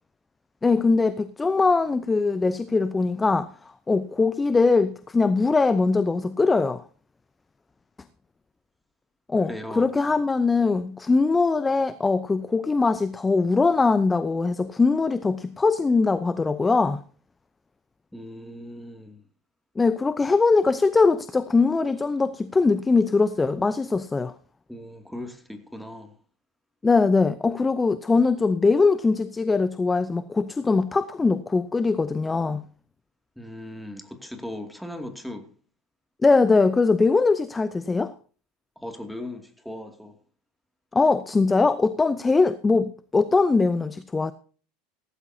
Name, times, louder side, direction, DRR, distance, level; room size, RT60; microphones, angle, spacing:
voice 1, 0.6-3.5 3.9-6.8 9.3-17.0 19.8-24.3 26.8-32.6 36.2-38.1 40.9-44.3, left 4 dB, 15° left, 0.7 m, -21 dB
voice 2, 9.4-9.9 18.1-19.2 24.7-26.1 33.4-35.5 38.8-40.2, left 1 dB, ahead, 2.5 m, -38 dB
17.0 x 14.5 x 2.8 m
hypercardioid pair, 85°, 0 cm